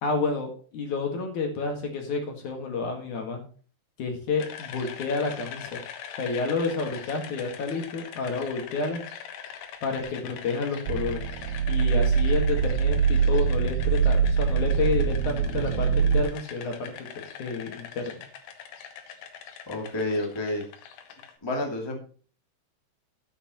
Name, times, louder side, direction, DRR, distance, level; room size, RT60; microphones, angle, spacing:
voice 1, 0.0-3.4 4.0-5.8 6.2-9.0 9.8-11.2 11.7-17.1 17.4-18.1, left 4 dB, 55° left, 3 dB, 2.8 m, -30 dB
sound 1, 4.4-21.3, left 8 dB, 80° left, 3.4 m, -42 dB
sound 2, 10.9-16.2, right 6 dB, 85° right, 2.1 m, -23 dB
voice 2, 19.7-20.6 21.4-22.0, left 1 dB, 15° left, 0 dB, 1.0 m, -29 dB
13.5 x 8.1 x 3.0 m, 0.40 s
omnidirectional pair, 4.9 m